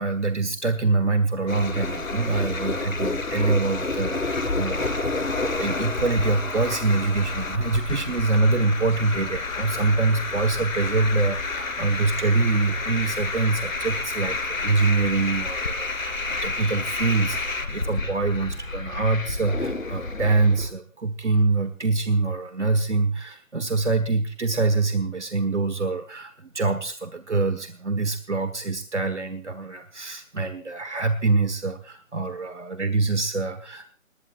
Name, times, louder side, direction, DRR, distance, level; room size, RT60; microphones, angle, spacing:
voice 1, 0.0-33.9, right 3 dB, 55° right, 10 dB, 1.5 m, -25 dB
sound 1, 1.5-20.7, left 3 dB, 80° left, 3.6 m, -29 dB
23.5 x 19.5 x 2.5 m, 0.39 s
figure-of-eight pair, 175°, 41 cm